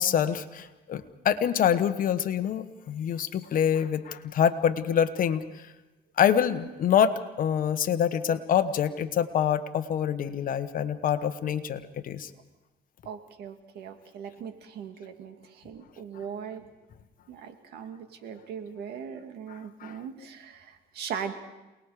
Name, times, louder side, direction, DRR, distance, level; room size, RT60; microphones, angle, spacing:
voice 1, 0.0-5.7 6.2-12.3 19.5-20.0, left 8 dB, 55° left, 10 dB, 1.2 m, -26 dB
voice 2, 13.0-16.7 17.3-21.3, right 7 dB, 75° right, 6 dB, 2.2 m, -39 dB
28.0 x 19.5 x 5.0 m, 1.1 s
cardioid pair, 110°, 17 cm